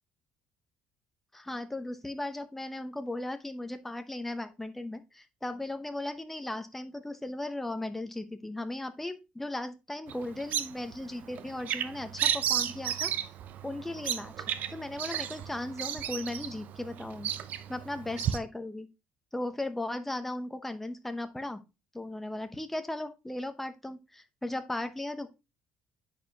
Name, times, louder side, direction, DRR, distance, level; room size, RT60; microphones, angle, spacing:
voice 1, 1.3-13.1 13.6-14.4 14.7-17.3 17.7-18.9 19.3-21.6 21.9-25.3, left 1 dB, 5° left, 9 dB, 0.8 m, -37 dB
Bird vocalization bird call bird song, 10.1-18.4, right 10 dB, 55° right, 0.5 m, -34 dB
9.9 x 4.4 x 2.9 m, 0.26 s
cardioid pair, 130°, 3 cm